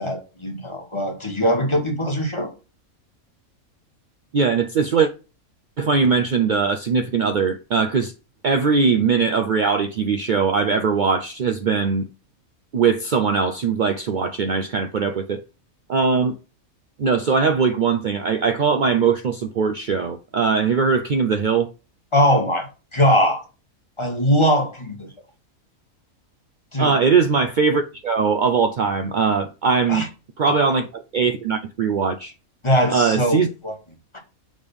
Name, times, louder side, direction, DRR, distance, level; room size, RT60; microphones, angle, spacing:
voice 1, 0.0-2.5 22.1-23.4 24.0-25.1 26.7-27.0 29.9-30.1 32.6-33.7, equal, 20° left, 1.5 m, -21 dB
voice 2, 4.3-5.1 5.8-8.1 8.4-12.1 12.7-15.4 15.9-16.4 17.0-21.7 26.8-30.1 30.4-32.3 32.9-33.5, right 5 dB, 70° right, 0.4 m, -20 dB
6.5 x 3.4 x 5.3 m
omnidirectional pair, 1.5 m